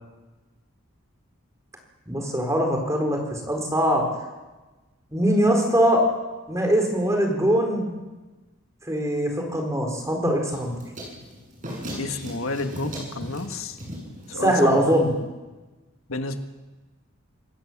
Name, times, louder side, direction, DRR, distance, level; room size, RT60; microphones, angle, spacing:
voice 1, 2.1-4.0 5.1-6.0 6.5-7.9 8.9-10.7 14.3-15.1, equal, 15° right, 2 dB, 4.1 m, -22 dB
sound 1, 10.5-15.2, equal, 40° right, 7.8 m, -38 dB
voice 2, 12.0-13.8 14.3-14.9 16.1-16.4, left 2 dB, 85° left, 7 dB, 1.6 m, -30 dB
27.0 x 16.0 x 7.4 m, 1.2 s
head